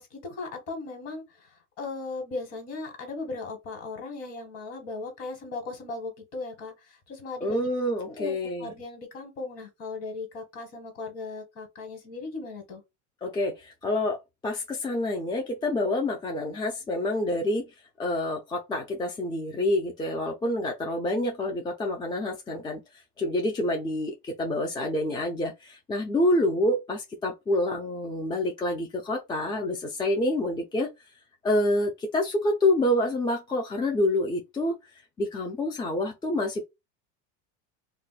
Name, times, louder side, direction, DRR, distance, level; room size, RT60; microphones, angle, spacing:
voice 1, 0.0-7.7 8.2-8.3 8.6-12.8, left 3 dB, 45° left, 1.4 m, -37 dB
voice 2, 7.4-8.7 13.2-17.7 18.0-22.8 23.2-30.9 31.4-34.7 35.2-36.6, left 1 dB, 15° left, 0.4 m, -27 dB
2.4 x 2.1 x 3.9 m
supercardioid pair, 130°, 34 cm